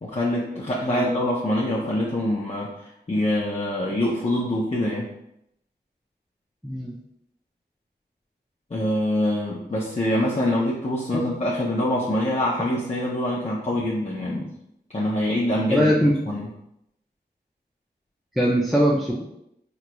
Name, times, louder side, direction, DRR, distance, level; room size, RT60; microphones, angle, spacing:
voice 1, 0.0-5.1 8.7-14.5 14.9-15.9 16.3-16.5, left 1 dB, 35° left, -5 dB, 0.7 m, -25 dB
voice 2, 6.6-7.0 11.1-11.2 15.7-16.1 18.4-19.2, equal, ahead, -5 dB, 0.6 m, -21 dB
3.8 x 3.0 x 2.3 m, 0.78 s
cardioid pair, 40°, 18 cm